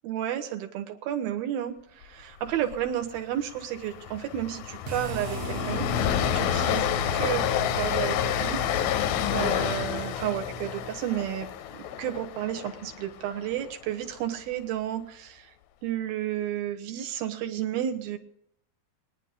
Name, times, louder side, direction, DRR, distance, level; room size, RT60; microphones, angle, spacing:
voice 1, 0.0-7.4 7.8-8.9 9.3-11.5 11.7-15.5 15.8-18.2, right 11 dB, 90° right, 5 dB, 3.1 m, -32 dB
Train, 2.5-2.8 3.0-3.2 3.6-13.7, left 11 dB, 85° left, 2.5 m, -29 dB
sound 1, 4.8-11.0, right 4 dB, 70° right, 1.6 m, -37 dB
22.0 x 10.5 x 3.7 m, 0.72 s
omnidirectional pair, 4.1 m